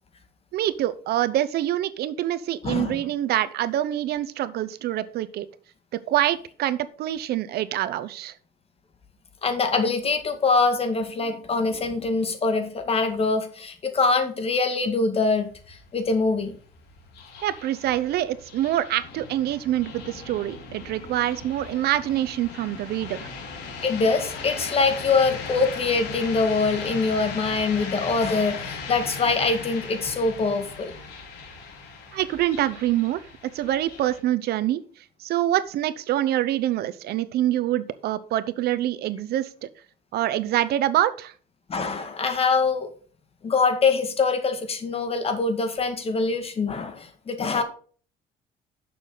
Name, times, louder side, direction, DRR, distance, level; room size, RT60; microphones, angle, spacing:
voice 1, 0.5-5.5 5.9-8.3 17.4-23.3 32.1-34.8 35.2-39.7 40.1-41.3, right 13 dB, 70° right, 15 dB, 0.8 m, -25 dB
voice 2, 2.6-3.0 9.4-16.5 23.8-30.9 41.7-42.9 43.4-47.6, left 4 dB, 35° left, 7 dB, 2.1 m, -24 dB
sound 1, 15.2-34.2, left 4 dB, 85° left, 3.8 m, -38 dB
11.0 x 6.9 x 3.9 m, 0.42 s
cardioid pair, 110°, 17 cm